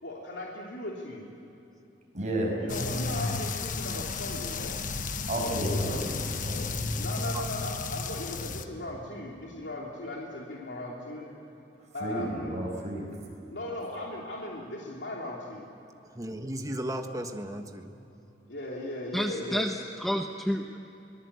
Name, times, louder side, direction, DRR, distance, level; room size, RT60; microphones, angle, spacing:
voice 1, 0.0-1.3 2.6-4.8 5.7-6.1 7.0-11.3 11.9-12.6 13.5-15.6 18.5-19.7, left 1 dB, 80° left, -3 dB, 3.1 m, -37 dB
voice 2, 2.1-2.5 5.3-6.0 6.5-6.6 12.0-13.0, right 1 dB, 40° right, -1 dB, 6.7 m, -31 dB
sound 1, 2.7-8.6, left 3 dB, 50° left, 1.2 m, -33 dB
voice 3, 5.6-6.4 6.7-7.0 7.3-7.5 16.0-17.9, right 1 dB, 20° right, 5 dB, 1.5 m, -37 dB
voice 4, 19.1-20.8, equal, ahead, 3 dB, 0.8 m, -30 dB
25.0 x 19.5 x 8.2 m, 2.9 s
head